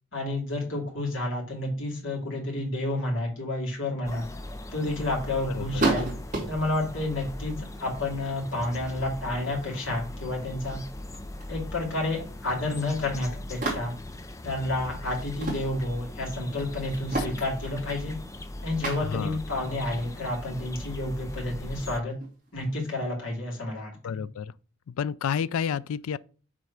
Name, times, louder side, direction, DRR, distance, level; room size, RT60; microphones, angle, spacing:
voice 1, 0.1-4.3 4.7-6.1 6.5-7.5 7.8-10.8 11.5-13.9 14.4-18.2 18.6-22.1 22.5-24.2, left 2 dB, 65° left, 2.7 m, -30 dB
sound 1, 4.0-22.0, left 1 dB, 15° left, 0.4 m, -40 dB
sound 2, 5.8-6.8 7.9-8.7 9.1-9.7 10.1-10.2 10.6-11.8 12.0-12.7 13.6-14.2 15.1-15.7 16.1-16.2 16.5-18.5 18.8-19.2 19.7-20.3 20.8-20.9 21.5-23.2, right 2 dB, 35° right, 2.5 m, -33 dB
voice 2, 19.0-19.4 24.0-24.5 24.9-26.2, left 7 dB, 85° left, 0.4 m, -30 dB
6.3 x 3.8 x 5.9 m
head